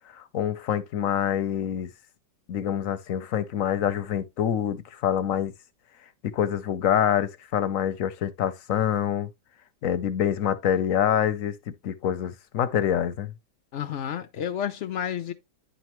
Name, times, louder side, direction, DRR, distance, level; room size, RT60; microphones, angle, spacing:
voice 1, 0.1-1.9 2.5-5.5 6.2-9.3 9.8-11.6 11.8-13.3, left 9 dB, 60° left, 0.9 m, -26 dB
voice 2, 13.7-15.3, left 9 dB, 80° left, 0.6 m, -30 dB
10.0 x 5.3 x 3.0 m
omnidirectional pair, 2.0 m